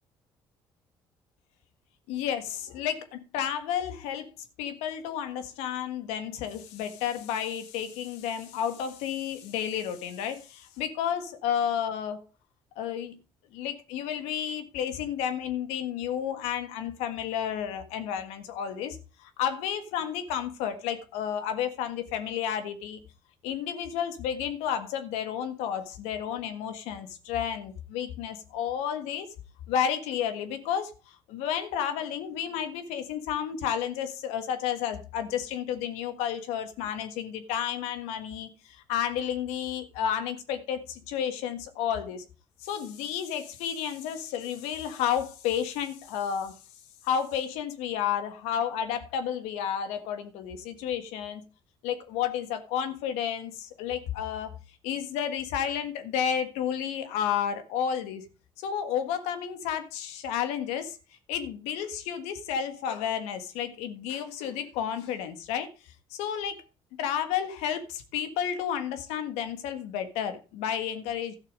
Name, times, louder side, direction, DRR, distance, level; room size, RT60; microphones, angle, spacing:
voice 1, 2.1-4.3 4.6-12.3 12.7-13.2 13.5-23.0 23.4-29.3 29.7-42.2 42.6-46.6 47.0-51.4 51.8-54.5 54.8-58.2 58.6-61.0 61.3-65.7 66.1-66.6 67.0-71.3, left 9 dB, 85° left, 1.5 m, -31 dB
13.0 x 6.8 x 5.3 m
supercardioid pair, 65°, 11 cm